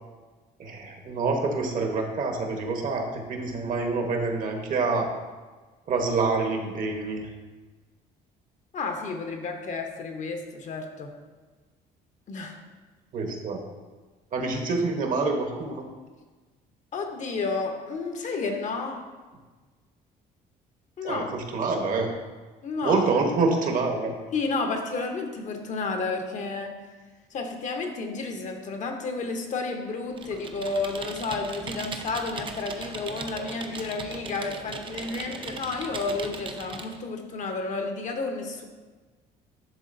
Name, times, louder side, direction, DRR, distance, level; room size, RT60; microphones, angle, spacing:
voice 1, 0.6-5.1 5.9-7.3 13.1-13.6 14.3-15.8 21.0-22.1 22.8-24.1, right 3 dB, 50° right, 3 dB, 1.0 m, -26 dB
voice 2, 8.7-11.1 12.3-12.6 16.9-19.0 21.0-21.4 22.6-23.1 24.3-26.8 27.3-38.6, left 3 dB, 45° left, 4 dB, 0.8 m, -31 dB
Computer keyboard, 30.1-37.0, right 4 dB, 30° right, 0.5 m, -38 dB
10.5 x 3.6 x 2.6 m, 1.3 s
cardioid pair, 110°, 17 cm